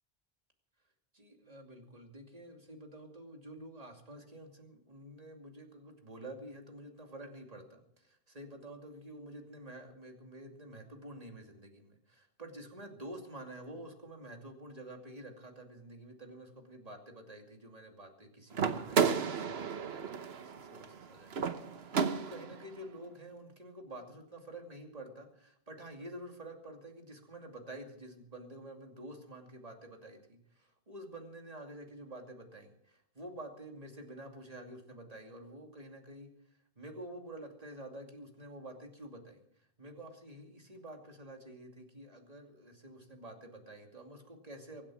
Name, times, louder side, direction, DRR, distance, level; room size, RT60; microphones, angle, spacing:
voice 1, 1.1-36.3 36.8-44.9, right 1 dB, 40° right, 3 dB, 2.7 m, -49 dB
sound 1, 18.5-22.6, right 6 dB, 85° right, 1.2 m, -33 dB
24.0 x 8.6 x 6.3 m, 0.69 s
omnidirectional pair, 1.0 m